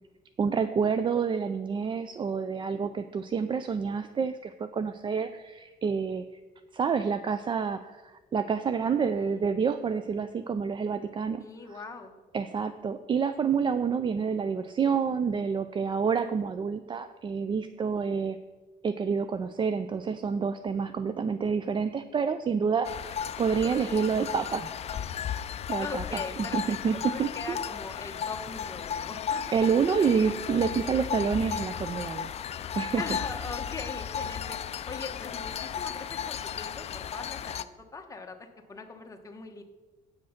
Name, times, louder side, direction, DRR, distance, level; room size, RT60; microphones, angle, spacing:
voice 1, 0.4-6.2 6.7-11.8 12.3-18.4 18.8-24.7 25.7-27.6 29.5-32.3 32.7-33.0, right 6 dB, 30° right, 11 dB, 0.4 m, -28 dB
voice 2, 11.4-12.2 25.8-29.5 30.1-30.2 33.0-34.6 34.8-37.7 37.9-39.6, left 4 dB, 20° left, 3 dB, 1.2 m, -41 dB
sound 1, 22.8-37.6, left 8 dB, 40° left, 0.4 m, -35 dB
8.7 x 6.2 x 5.8 m, 1.2 s
cardioid pair, 110°, 17 cm